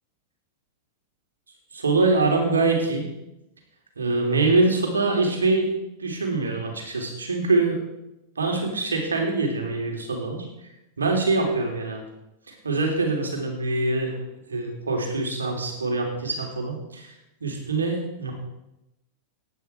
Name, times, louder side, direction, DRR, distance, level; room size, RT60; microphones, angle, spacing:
voice 1, 1.7-3.0 3.9-5.7 6.0-7.8 8.3-10.5 11.0-12.0 12.5-14.1 14.5-17.1 17.4-18.3, right 3 dB, 90° right, 2 dB, 3.4 m, -24 dB
16.0 x 10.5 x 4.6 m, 0.89 s
hypercardioid pair, 100°, 0 cm